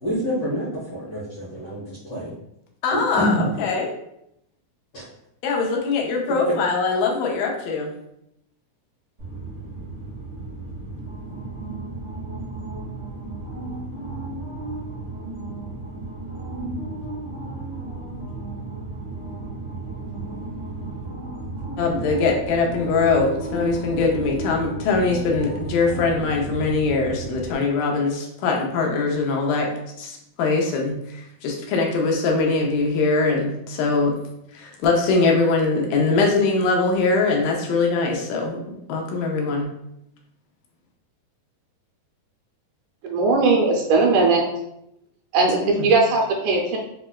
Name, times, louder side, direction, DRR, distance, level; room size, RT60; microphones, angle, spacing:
voice 1, 0.0-2.3 2.9-3.5 4.9-5.0, equal, 70° left, -9 dB, 1.2 m, -27 dB
voice 2, 2.8-3.9 5.4-7.9 21.8-29.7 30.0-34.2 34.5-39.7 45.6-45.9, left 3 dB, 90° left, 0 dB, 2.3 m, -22 dB
sound 1, 9.2-27.5, right 2 dB, 60° right, 0.8 m, -33 dB
voice 3, 43.0-44.5 45.3-46.8, right 3 dB, 80° right, 0 dB, 1.9 m, -19 dB
5.6 x 2.1 x 2.2 m, 0.80 s
omnidirectional pair, 3.8 m